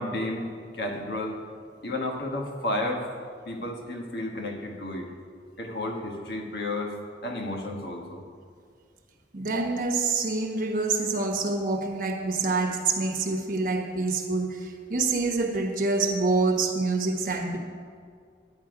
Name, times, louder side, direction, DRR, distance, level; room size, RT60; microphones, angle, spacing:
voice 1, 0.0-1.4 1.8-3.1 3.5-5.1 5.6-6.9 7.2-8.2, left 1 dB, 65° left, 1 dB, 1.4 m, -32 dB
voice 2, 9.3-14.6 14.9-17.6, right 3 dB, 50° right, 2 dB, 1.2 m, -26 dB
11.0 x 8.7 x 5.0 m, 2.1 s
head